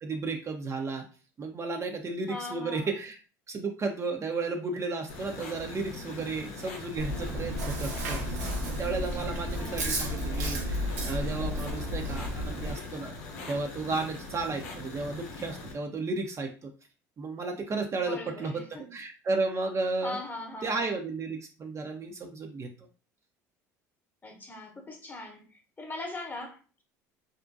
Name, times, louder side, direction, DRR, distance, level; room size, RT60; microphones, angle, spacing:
voice 1, 0.0-1.0 1.4-3.2 3.5-13.1 13.5-16.7 17.2-18.6 18.9-20.2 20.6-22.7, right 3 dB, 35° right, 0.5 m, -33 dB
voice 2, 2.3-2.9 9.5-10.1 18.0-19.0 20.0-21.0 24.2-26.8, left 2 dB, 20° left, 0.8 m, -41 dB
sound 1, 5.1-15.7, left 3 dB, 75° left, 0.6 m, -42 dB
Chewing mastication, 7.0-12.7, equal, 85° right, 0.6 m, -32 dB
2.4 x 2.1 x 2.4 m
hypercardioid pair, 70°, 9 cm